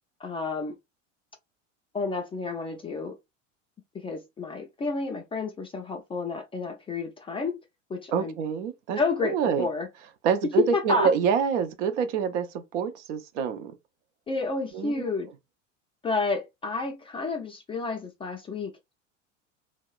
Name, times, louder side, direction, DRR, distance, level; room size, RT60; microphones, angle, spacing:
voice 1, 0.2-0.7 1.9-3.2 3.9-7.6 7.9-8.3 9.0-9.9 10.6-11.1 14.3-15.3 16.0-18.7, left 3 dB, 15° left, 0.3 m, -30 dB
voice 2, 8.1-9.7 10.2-13.7 14.7-15.1, right 7 dB, 70° right, 0.6 m, -27 dB
2.8 x 2.0 x 2.3 m
hypercardioid pair, 90°, 38 cm